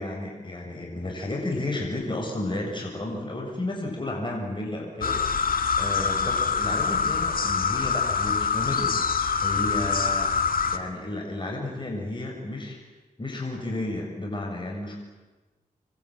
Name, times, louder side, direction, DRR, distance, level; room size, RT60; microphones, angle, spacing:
voice 1, 0.0-10.3 10.7-12.8 13.2-15.0, left 2 dB, 30° left, 0 dB, 7.3 m, -32 dB
sound 1, 5.0-10.8, left 5 dB, 70° left, 2.2 m, -25 dB
27.5 x 23.5 x 9.2 m, 1.2 s
cardioid pair, 55°, 15 cm